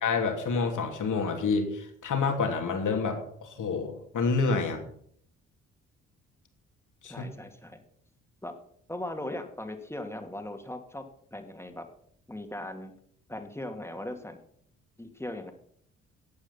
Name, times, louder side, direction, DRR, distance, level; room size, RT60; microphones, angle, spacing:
voice 1, 0.0-4.8 7.0-7.2, left 4 dB, 60° left, 4 dB, 2.9 m, -28 dB
voice 2, 7.0-7.8 8.4-8.5 8.9-11.0 11.3-11.9 12.3-12.9 13.3-14.4 15.0-15.5, left 1 dB, 5° left, 5 dB, 2.5 m, -38 dB
14.5 x 8.7 x 5.8 m, 0.65 s
hypercardioid pair, 45°, 35 cm